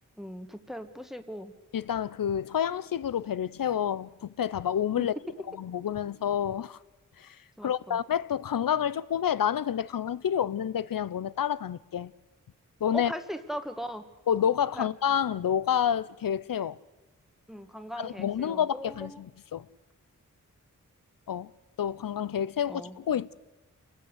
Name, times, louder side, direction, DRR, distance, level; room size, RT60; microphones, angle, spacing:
voice 1, 0.2-1.5 5.0-5.1 7.6-8.0 12.9-14.0 14.7-14.9 17.5-19.2 22.7-23.0, equal, ahead, 1.4 m, -38 dB
voice 2, 1.7-5.1 5.6-6.8 7.2-7.4 7.6-12.1 12.8-13.1 14.3-16.8 18.0-19.7 21.3-21.5 21.8-23.3, left 9 dB, 85° left, 0.7 m, -29 dB
28.0 x 19.0 x 8.1 m
wide cardioid pair, 130°, 33 cm